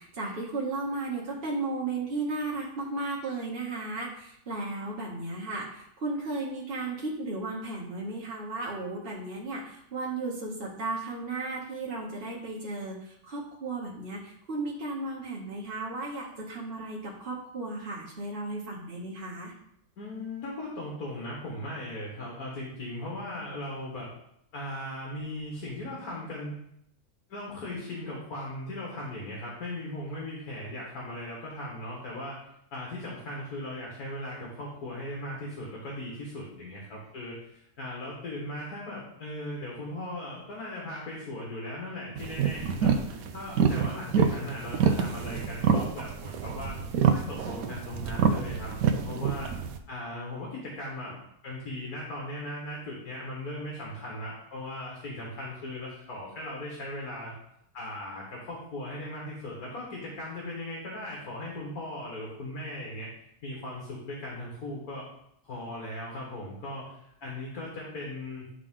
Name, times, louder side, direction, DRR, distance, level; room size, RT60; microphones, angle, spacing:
voice 1, 0.0-19.5, right 2 dB, 40° right, -4 dB, 1.3 m, -35 dB
voice 2, 20.0-24.1 24.5-26.6 27.3-32.4 32.7-46.8 47.1-49.5 49.9-51.2 51.4-57.3 57.7-63.1 63.4-65.1 65.4-68.5, left 1 dB, 75° left, -3 dB, 1.9 m, -38 dB
sound 1, 42.2-49.8, right 6 dB, 75° right, 1.0 m, -27 dB
9.9 x 3.7 x 3.7 m, 0.74 s
omnidirectional pair, 1.6 m